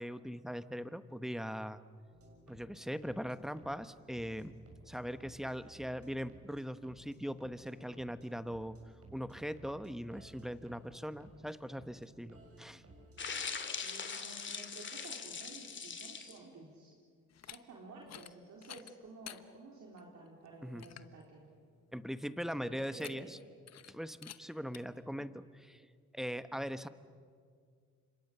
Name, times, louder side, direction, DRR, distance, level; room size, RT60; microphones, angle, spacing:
voice 1, 0.0-1.8 2.5-4.5 4.9-8.8 9.1-12.8 20.6-20.9 21.9-23.4 23.9-26.9, equal, ahead, 12 dB, 1.1 m, -41 dB
sound 1, 2.1-13.4, right 2 dB, 50° right, 6.8 m, -59 dB
sound 2, 13.2-16.4, left 5 dB, 40° left, 2.5 m, -41 dB
voice 2, 13.8-16.9 17.4-21.5 22.6-23.3, right 3 dB, 65° right, -2 dB, 4.1 m, -52 dB
sound 3, 17.3-17.6 18.0-18.3 18.6-19.4 20.0-20.1 20.5-20.6 20.8-21.1 22.8-23.4 23.7-23.9 24.2-24.4 24.7-24.8, left 10 dB, 60° left, 1.1 m, -50 dB
30.0 x 26.0 x 6.9 m, 2.1 s
cardioid pair, 90°, 30 cm